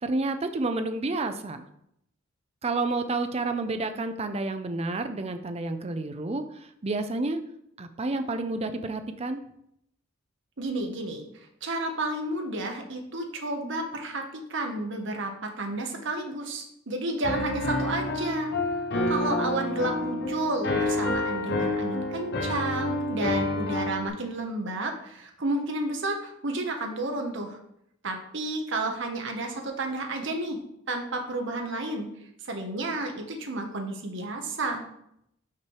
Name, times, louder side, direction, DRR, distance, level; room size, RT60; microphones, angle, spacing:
voice 1, 0.0-1.7 2.6-6.5 6.8-7.4 7.8-9.4, right 2 dB, 30° right, 8 dB, 0.5 m, -29 dB
voice 2, 10.6-11.3 11.6-14.2 14.5-18.5 19.1-27.6 28.0-30.6 30.9-32.1 32.4-34.8, right 2 dB, 60° right, 3 dB, 1.1 m, -31 dB
Piano, 17.2-24.1, left 2 dB, 55° left, 1.0 m, -28 dB
5.9 x 4.5 x 4.7 m, 0.75 s
head